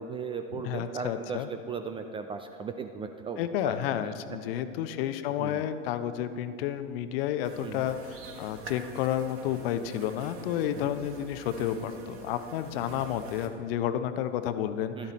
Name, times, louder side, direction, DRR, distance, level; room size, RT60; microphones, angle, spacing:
voice 1, 0.0-4.1 5.4-5.6 7.6-7.8 10.7-10.9 15.0-15.1, right 5 dB, 15° right, 7 dB, 0.3 m, -37 dB
voice 2, 0.5-1.5 3.4-15.1, left 10 dB, 50° left, 11 dB, 0.7 m, -31 dB
sound 1, 7.4-13.5, right 4 dB, 35° right, 1.3 m, -46 dB
12.0 x 12.0 x 4.2 m, 2.5 s
figure-of-eight pair, 80°, 36 cm